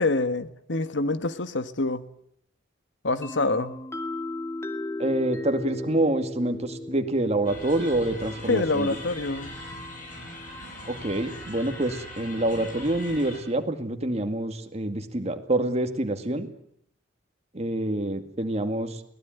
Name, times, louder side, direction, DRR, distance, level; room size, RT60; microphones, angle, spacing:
voice 1, 0.0-2.0 3.0-3.8 8.5-9.5, left 3 dB, 70° left, 12 dB, 1.4 m, -26 dB
sound 1, 3.2-10.9, left 2 dB, 15° left, 2.3 m, -37 dB
voice 2, 5.0-8.9 10.9-16.5 17.5-19.0, right 1 dB, 35° right, 7 dB, 2.1 m, -27 dB
sound 2, 7.4-13.4, left 1 dB, 45° left, 8.0 m, -40 dB
24.0 x 18.0 x 9.3 m, 0.70 s
head